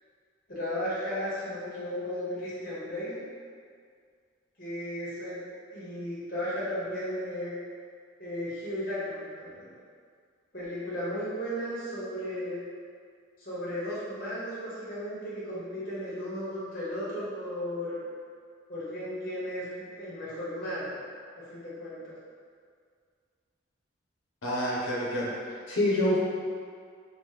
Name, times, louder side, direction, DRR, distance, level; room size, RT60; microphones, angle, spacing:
voice 1, 0.5-3.2 4.6-5.4 5.7-7.5 8.2-9.7 10.5-12.6 13.4-18.0 18.7-21.0 21.5-22.1, equal, 45° left, -9 dB, 1.0 m, -35 dB
voice 2, 24.4-25.3 25.7-26.2, left 1 dB, 80° left, -6 dB, 0.6 m, -26 dB
3.0 x 2.1 x 3.2 m, 2.1 s
head